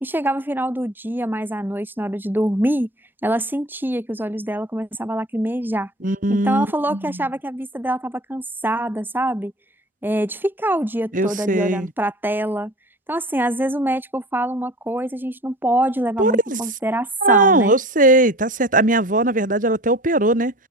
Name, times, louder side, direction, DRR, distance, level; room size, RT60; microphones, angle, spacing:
voice 1, 0.0-2.9 3.2-5.9 6.3-9.5 10.0-12.7 13.1-17.8, right 1 dB, 10° right, 1.6 m, -24 dB
voice 2, 6.0-7.2 11.1-11.9 16.2-16.6 17.2-20.5, right 2 dB, 45° right, 2.6 m, -19 dB
head